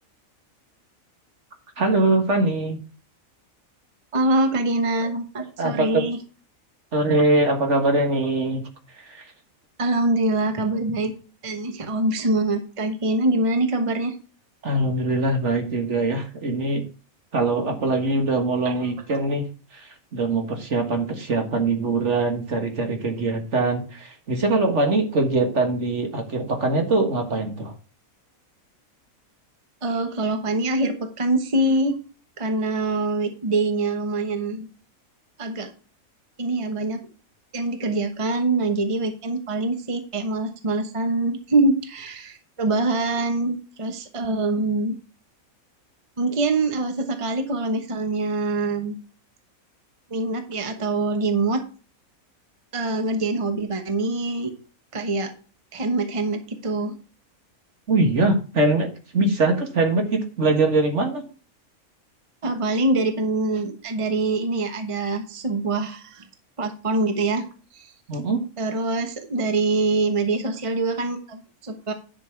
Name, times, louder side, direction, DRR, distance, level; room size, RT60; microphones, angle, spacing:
voice 1, 1.8-2.8 5.6-6.1 6.9-8.6 8.9-9.3 14.6-16.8 17.3-19.5 19.7-27.7 57.9-61.2 68.1-68.4, right 2 dB, 55° right, 5 dB, 1.8 m, -22 dB
voice 2, 4.1-6.2 9.8-11.1 11.4-14.1 18.6-18.7 19.1-19.2 29.8-32.0 32.4-34.7 35.4-35.7 36.4-37.1 37.5-45.0 46.2-48.9 50.1-51.6 52.7-54.5 54.9-55.3 55.7-57.0 62.4-66.2 66.6-67.5 67.7-67.9 68.6-71.9, right 2 dB, 25° right, 6 dB, 1.1 m, -24 dB
10.5 x 5.9 x 4.6 m, 0.36 s
omnidirectional pair, 1.5 m